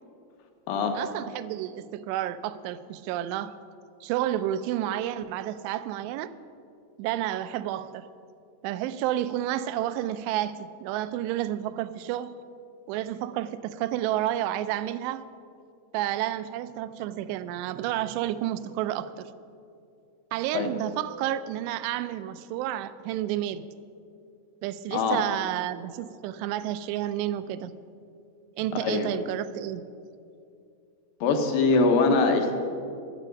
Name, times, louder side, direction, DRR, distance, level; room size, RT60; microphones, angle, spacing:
voice 1, 0.9-3.6 4.0-6.3 7.0-8.1 8.6-12.3 12.9-15.3 15.9-19.3 20.3-23.7 24.6-27.7 28.6-29.8, right 12 dB, 85° right, 2.7 m, -30 dB
voice 2, 31.2-32.5, left 3 dB, 70° left, 2.5 m, -22 dB
22.5 x 8.2 x 5.3 m
omnidirectional pair, 5.0 m